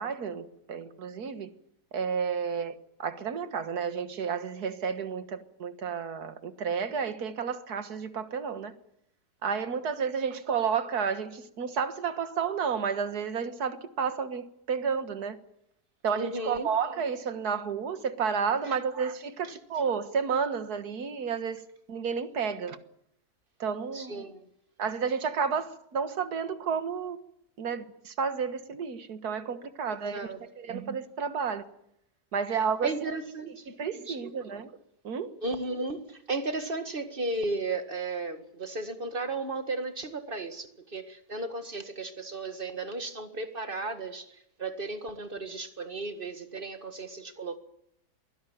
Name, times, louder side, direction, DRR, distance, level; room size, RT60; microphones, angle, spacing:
voice 1, 0.0-1.5 1.9-8.7 9.4-15.4 16.0-22.8 23.6-24.2 24.8-27.2 27.6-30.3 30.6-31.7 32.3-32.9 33.7-34.7 35.0-35.3, right 6 dB, 70° right, 2.0 m, -31 dB
voice 2, 16.1-16.7 18.7-18.8 19.5-19.6 23.9-24.5 30.1-30.4 32.8-33.7 34.1-34.5 35.4-47.6, right 3 dB, 35° right, 2.0 m, -35 dB
23.0 x 17.0 x 9.3 m
omnidirectional pair, 1.7 m